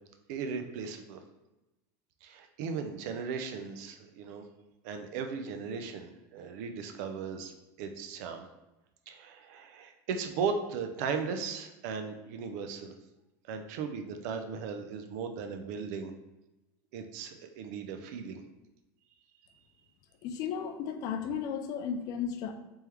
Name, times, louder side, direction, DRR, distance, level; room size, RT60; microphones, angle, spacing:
voice 1, 0.3-1.2 2.2-4.4 4.8-7.5 7.8-8.5 9.1-13.0 13.5-16.1 16.9-18.4, right 5 dB, 65° right, 6 dB, 0.5 m, -37 dB
voice 2, 20.2-22.5, left 7 dB, 40° left, 7 dB, 0.3 m, -34 dB
3.5 x 3.3 x 3.0 m, 1.0 s
cardioid pair, 170°, 9 cm